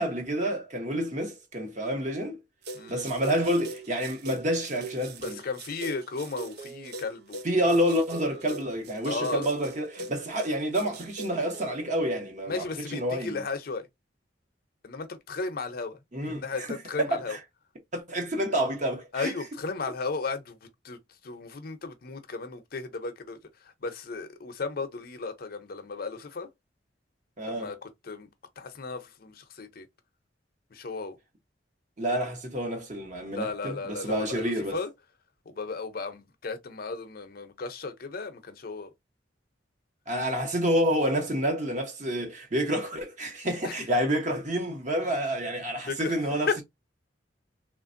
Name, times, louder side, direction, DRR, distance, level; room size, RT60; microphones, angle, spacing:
voice 1, 0.0-2.4 2.9-5.4 7.4-13.4 16.1-16.7 17.0-17.4 17.9-19.3 27.4-27.7 32.0-34.8 40.1-46.6, equal, 45° right, 1.1 m, -28 dB
sound 1, 2.6-12.0, right 3 dB, 60° right, 0.5 m, -42 dB
voice 2, 2.7-3.1 5.2-7.4 9.0-9.5 12.5-13.9 14.8-16.0 16.3-17.4 19.1-21.0 21.2-23.4 23.8-26.5 27.5-28.3 28.6-29.9 30.7-31.2 33.3-34.9 35.5-38.9 43.6-43.8 45.9-46.2 46.5-46.6, left 4 dB, 55° left, 0.6 m, -35 dB
3.2 x 2.5 x 2.5 m
head